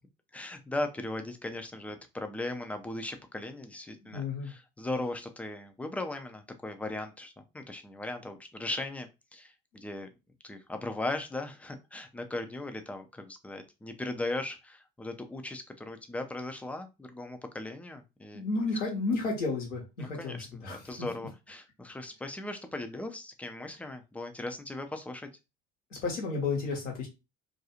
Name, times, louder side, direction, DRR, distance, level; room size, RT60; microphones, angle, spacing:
voice 1, 0.3-10.1 10.4-18.4 20.0-25.3, left 2 dB, 5° left, 6 dB, 0.3 m, -38 dB
voice 2, 4.1-4.5 18.3-20.8 26.0-27.1, left 3 dB, 85° left, -1 dB, 1.0 m, -32 dB
2.5 x 2.3 x 2.8 m, 0.26 s
figure-of-eight pair, 55°, 36 cm